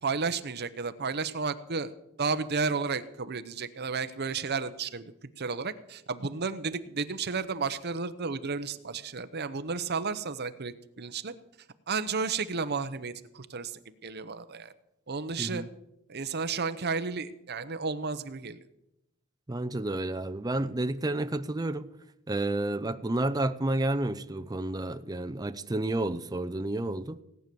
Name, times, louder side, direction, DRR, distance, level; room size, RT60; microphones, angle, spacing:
voice 1, 0.0-1.9 2.2-11.3 11.9-14.7 15.1-15.6 16.1-18.6, right 4 dB, 50° right, 0.9 m, -32 dB
voice 2, 19.5-21.9 22.3-27.2, right 2 dB, 15° right, 0.6 m, -30 dB
18.0 x 9.3 x 6.9 m
head